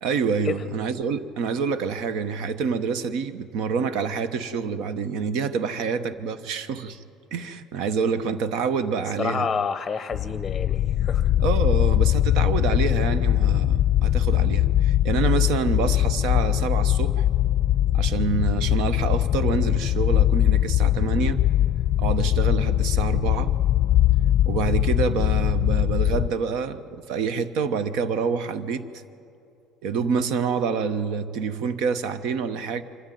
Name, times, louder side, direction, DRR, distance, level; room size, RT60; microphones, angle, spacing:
voice 1, 0.0-7.0 7.3-9.5 11.4-17.3 17.9-21.4 22.0-23.5 24.5-28.8 29.8-32.8, right 5 dB, 75° right, 13 dB, 1.1 m, -27 dB
voice 2, 9.2-11.3 15.6-15.7, left 5 dB, 20° left, 11 dB, 0.8 m, -29 dB
sound 1, 10.1-26.3, left 12 dB, 50° left, 0.5 m, -21 dB
24.5 x 13.0 x 9.3 m, 2.6 s
cardioid pair, 115°, 0 cm